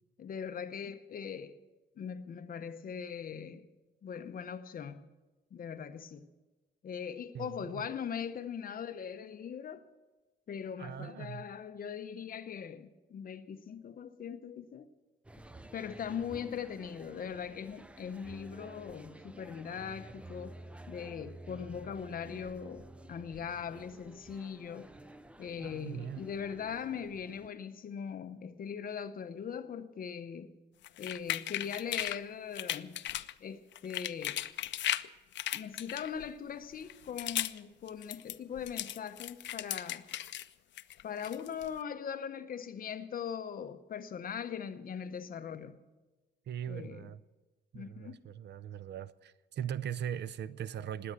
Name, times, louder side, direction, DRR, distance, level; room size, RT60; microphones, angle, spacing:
voice 1, 0.2-1.5 2.0-3.7 4.0-5.1 5.5-6.3 6.8-9.8 10.5-14.9 15.7-20.5 20.9-24.9 25.4-30.5 31.0-33.0 33.4-34.4 35.5-40.1 41.0-45.8 46.7-47.1 47.7-48.2, left 7 dB, 50° left, 0.8 m, -40 dB
voice 2, 7.3-7.9 10.8-11.5 25.6-26.3 46.5-47.2 47.7-51.1, right 9 dB, 70° right, 0.5 m, -40 dB
sound 1, 15.2-27.5, right 1 dB, 5° right, 0.4 m, -51 dB
sound 2, 30.8-32.2 32.5-33.3 33.7-35.1 35.3-36.3 36.8-37.6 37.9-40.5 40.8-41.7, left 12 dB, 75° left, 0.5 m, -36 dB
20.0 x 8.6 x 8.0 m
wide cardioid pair, 165°, 19 cm